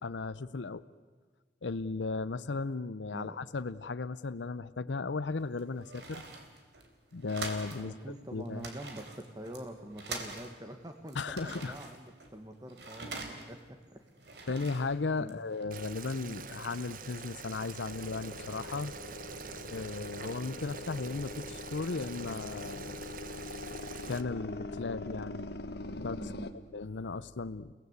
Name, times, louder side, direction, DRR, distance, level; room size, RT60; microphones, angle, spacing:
voice 1, 0.0-0.8 1.6-6.2 7.1-7.9 8.3-8.7 11.1-11.7 14.5-18.9 19.7-23.1 24.1-25.5 26.0-27.7, left 3 dB, 85° left, 15 dB, 0.7 m, -36 dB
navette de métier à tisser, 5.3-7.9 8.1-8.2 8.5-10.7 11.1-13.7 14.1-15.6, right 3 dB, 70° right, 3.7 m, -44 dB
voice 2, 7.8-14.1 15.2-15.4 26.2-26.6, right 1 dB, 20° right, 5 dB, 1.7 m, -45 dB
Boiling, 15.7-24.2, right 5 dB, 50° right, 1.1 m, -46 dB
sound 1, 17.9-26.5, left 2 dB, 60° left, 1.3 m, -43 dB
29.5 x 18.5 x 8.2 m, 1.5 s
head